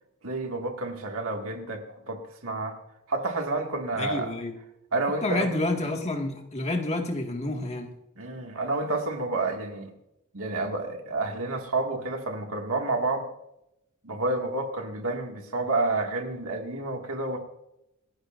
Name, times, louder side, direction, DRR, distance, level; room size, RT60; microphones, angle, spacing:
voice 1, 0.2-2.8 3.1-4.3 4.9-5.5 8.2-9.9 10.3-13.3 14.0-17.4, right 2 dB, 65° right, 3 dB, 2.1 m, -29 dB
voice 2, 3.9-4.6 5.2-7.9, left 2 dB, 30° left, 2 dB, 2.0 m, -29 dB
28.0 x 11.5 x 2.6 m, 0.84 s
head